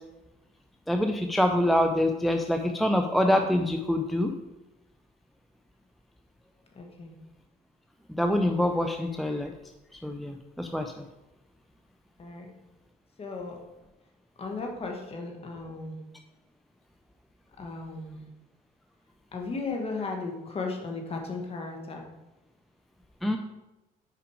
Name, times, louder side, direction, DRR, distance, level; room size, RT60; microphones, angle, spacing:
voice 1, 0.9-4.3 8.2-9.5 9.9-11.0 23.2-23.4, left 1 dB, ahead, 5 dB, 0.4 m, -25 dB
voice 2, 6.7-7.1 12.2-12.5 13.2-13.6 14.4-16.0 17.6-18.2 19.3-22.1, left 3 dB, 35° left, 2 dB, 1.5 m, -35 dB
6.0 x 4.9 x 4.9 m, 1.0 s
cardioid pair, 110°, 17 cm